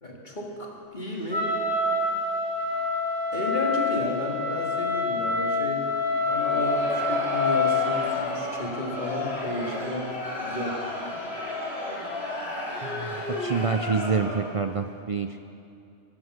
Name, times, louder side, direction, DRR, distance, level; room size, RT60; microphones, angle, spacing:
voice 1, 0.0-1.5 3.3-5.9 6.3-10.1 10.4-10.8, left 1 dB, 40° left, -1 dB, 2.2 m, -33 dB
Wind instrument woodwind instrument, 1.3-8.1, left 3 dB, 35° right, 4.5 m, -26 dB
Crowd, 6.2-14.6, left 2 dB, 55° left, 2.8 m, -33 dB
voice 2, 12.8-15.4, right 5 dB, 55° right, 7 dB, 0.3 m, -27 dB
22.0 x 9.6 x 6.6 m, 2.7 s
omnidirectional pair, 1.2 m